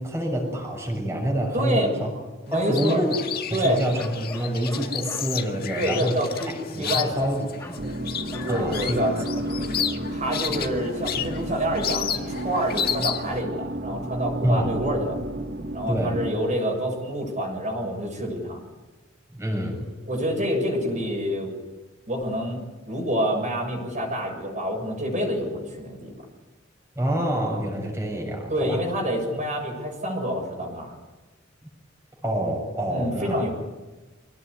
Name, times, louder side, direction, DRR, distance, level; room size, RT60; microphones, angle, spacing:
voice 1, 0.0-2.1 2.5-3.2 3.5-6.2 6.7-7.8 8.5-9.1 9.4-9.7 14.4-14.7 15.9-16.2 19.3-19.9 27.0-28.8 32.2-33.5, right 1 dB, 15° right, 0 dB, 6.9 m, -27 dB
voice 2, 1.5-2.0 2.5-3.0 3.5-3.8 5.8-7.3 8.4-9.1 10.1-15.2 15.7-18.6 20.1-21.5 22.1-26.1 28.5-31.0 32.9-33.5, equal, 40° right, 1 dB, 6.9 m, -27 dB
sound 1, 2.5-13.4, left 8 dB, 50° left, 1.9 m, -32 dB
Bark, 4.0-5.3 6.3-6.6 6.9-7.1 7.6-7.9 8.3-8.6, left 2 dB, 15° left, 2.3 m, -41 dB
sound 2, 7.8-16.3, right 1 dB, 65° right, 2.6 m, -32 dB
27.0 x 18.5 x 9.7 m, 1.2 s
head